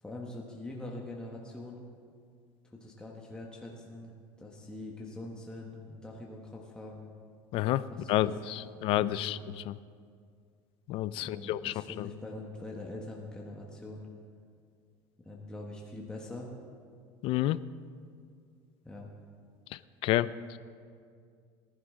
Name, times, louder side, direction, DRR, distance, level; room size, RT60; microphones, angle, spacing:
voice 1, 0.0-1.8 2.7-7.1 7.9-9.4 11.1-14.1 15.2-16.5 18.8-19.1, left 2 dB, 5° left, -2 dB, 1.4 m, -43 dB
voice 2, 7.5-9.4 9.7-9.8 10.9-12.1 17.2-17.6 20.0-20.3, left 14 dB, 55° left, 17 dB, 0.4 m, -29 dB
19.0 x 11.5 x 3.7 m, 2.2 s
supercardioid pair, 125°, 11 cm